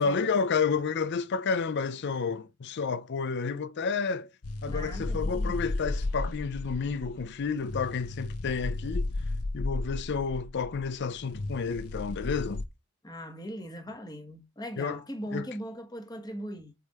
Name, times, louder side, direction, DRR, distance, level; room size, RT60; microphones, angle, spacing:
voice 1, 0.0-4.3 4.6-9.1 9.5-12.6 14.8-15.0 15.3-15.5, left 5 dB, 50° left, 0.5 m, -30 dB
sound 1, 4.4-12.6, left 2 dB, 85° left, 0.9 m, -34 dB
voice 2, 4.6-5.6 13.0-16.7, equal, 20° left, 1.5 m, -39 dB
8.3 x 3.4 x 4.2 m
head